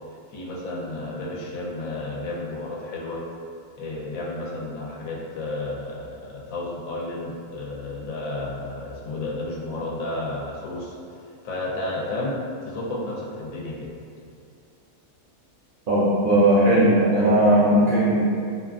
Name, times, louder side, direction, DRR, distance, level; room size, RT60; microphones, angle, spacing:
voice 1, 0.3-3.2 3.8-11.0 11.4-12.4 12.6-13.9, left 2 dB, 80° left, -4 dB, 1.0 m, -32 dB
voice 2, 15.9-18.2, right 1 dB, 90° right, -9 dB, 0.4 m, -18 dB
2.6 x 2.3 x 2.3 m, 2.4 s
omnidirectional pair, 1.4 m